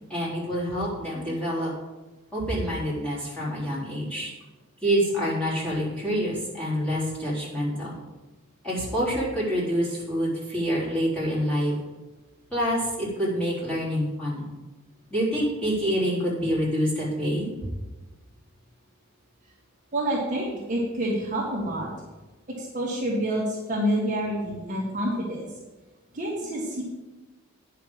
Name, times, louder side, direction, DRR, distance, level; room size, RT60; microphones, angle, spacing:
voice 1, 0.1-1.7 2.3-4.3 4.8-7.9 8.6-11.7 12.5-14.4 15.1-17.5, equal, 5° left, -9 dB, 4.0 m, -27 dB
voice 2, 19.9-21.9 22.6-25.5 26.1-26.8, right 1 dB, 35° right, -4 dB, 1.8 m, -28 dB
9.5 x 5.8 x 7.6 m, 1.1 s
head